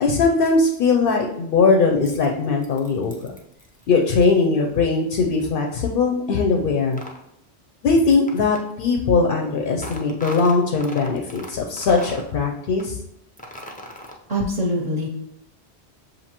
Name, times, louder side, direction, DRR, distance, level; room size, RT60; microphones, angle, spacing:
voice 1, 0.0-3.3 3.9-7.0 7.8-13.0, left 4 dB, 65° left, 1 dB, 0.7 m, -20 dB
sound 1, 1.7-4.2 6.9-7.2 8.3-8.7 9.8-11.5 11.8-12.3 12.8-12.9 13.4-14.4, left 1 dB, 15° left, 0.3 m, -38 dB
voice 2, 14.3-15.1, equal, 40° right, -2 dB, 0.7 m, -23 dB
6.6 x 2.7 x 2.9 m, 0.81 s
omnidirectional pair, 1.1 m